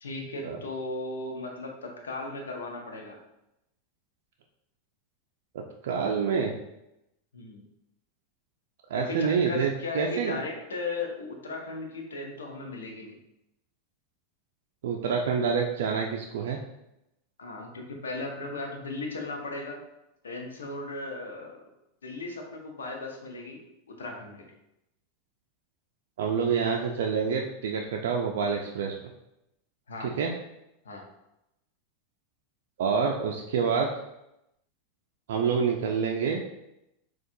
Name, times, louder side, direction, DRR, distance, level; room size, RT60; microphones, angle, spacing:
voice 1, 0.0-3.2 7.3-7.6 8.9-13.2 17.4-19.8 20.2-21.6 22.0-23.6 23.9-24.5 29.9-30.1 30.8-31.0, left 3 dB, 90° left, 1 dB, 0.7 m, -36 dB
voice 2, 5.8-6.5 8.9-10.4 14.8-16.6 26.2-29.0 30.0-30.3 32.8-33.9 35.3-36.4, right 6 dB, 75° right, 1 dB, 0.3 m, -27 dB
4.3 x 2.3 x 2.6 m, 0.87 s
hypercardioid pair, 100°, 0 cm